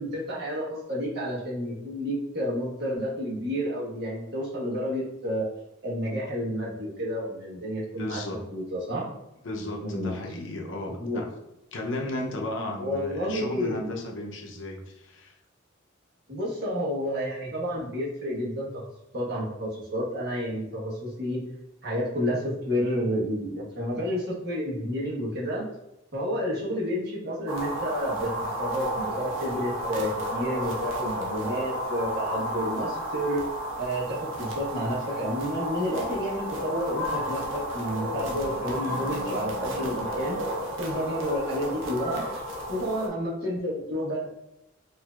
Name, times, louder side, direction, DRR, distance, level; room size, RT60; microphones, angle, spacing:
voice 1, 0.0-5.4 5.8-9.1 9.8-10.2 10.9-11.2 12.8-13.8 16.3-18.9 19.1-21.4 21.8-25.6 26.1-28.3 28.6-33.4 33.8-40.4 40.8-42.4 42.7-44.3, equal, 55° right, -5 dB, 1.2 m, -30 dB
voice 2, 8.0-8.4 9.4-11.3 11.7-15.3, left 1 dB, 65° left, 1 dB, 0.7 m, -34 dB
sound 1, 27.5-43.1, equal, 70° right, 0.7 m, -32 dB
4.4 x 2.7 x 2.4 m, 0.85 s
head